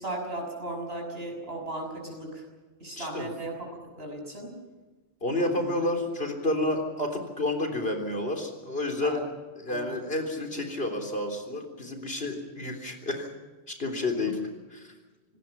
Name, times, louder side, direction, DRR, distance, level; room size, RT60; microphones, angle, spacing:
voice 1, 0.0-2.4 2.8-3.5 4.0-4.5 5.3-5.7 9.0-9.2 9.7-10.0, right 2 dB, 70° right, 2 dB, 6.6 m, -36 dB
voice 2, 2.9-3.3 5.2-9.2 9.6-13.3 13.7-14.4 14.7-14.9, left 2 dB, 65° left, 2 dB, 3.9 m, -30 dB
26.0 x 19.0 x 5.9 m, 1.3 s
omnidirectional pair, 1.1 m